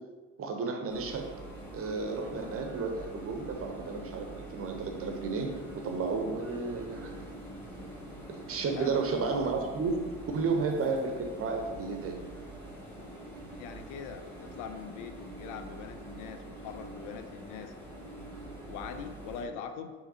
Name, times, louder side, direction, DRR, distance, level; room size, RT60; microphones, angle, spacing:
voice 1, 0.4-1.3 1.7-7.1 8.3-10.0 10.3-12.2, right 4 dB, 40° right, 3 dB, 0.7 m, -32 dB
sound 1, 0.9-19.4, right 1 dB, 5° left, 1.2 m, -45 dB
voice 2, 8.6-9.1 13.5-17.7 18.7-19.9, left 7 dB, 65° left, 8 dB, 0.4 m, -42 dB
4.7 x 2.9 x 2.7 m, 1.4 s
hypercardioid pair, 55°, 34 cm